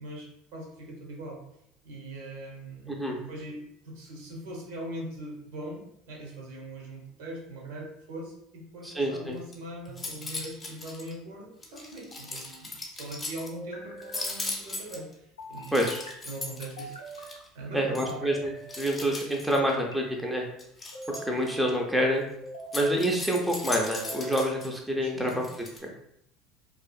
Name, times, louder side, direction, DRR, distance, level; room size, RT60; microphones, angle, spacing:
voice 1, 0.0-1.4 1.8-3.6 3.8-15.8 16.2-17.0 17.2-18.3 25.0-25.4, right 1 dB, 70° right, -1 dB, 0.7 m, -41 dB
voice 2, 8.8-9.4 15.7-16.0 17.7-20.5 21.3-22.2 22.7-25.4 25.8-25.9, equal, ahead, 0 dB, 0.5 m, -27 dB
sound 1, 9.3-9.5 9.9-11.1 11.6-13.5 14.0-15.1 15.6-17.5 17.9-18.1 18.7-19.7 20.6-21.5 22.6-24.7 25.3-25.8, left 2 dB, 25° left, 0.7 m, -38 dB
sound 2, 9.9-10.5 11.9-12.7 13.5-14.3 15.4-16.1 16.8-17.4 18.0-18.9 19.5-20.2 20.9-21.8 22.4-23.0 23.7-24.5, right 1 dB, 85° left, 0.4 m, -43 dB
2.7 x 2.4 x 2.3 m, 0.76 s
figure-of-eight pair, 65°, 0 cm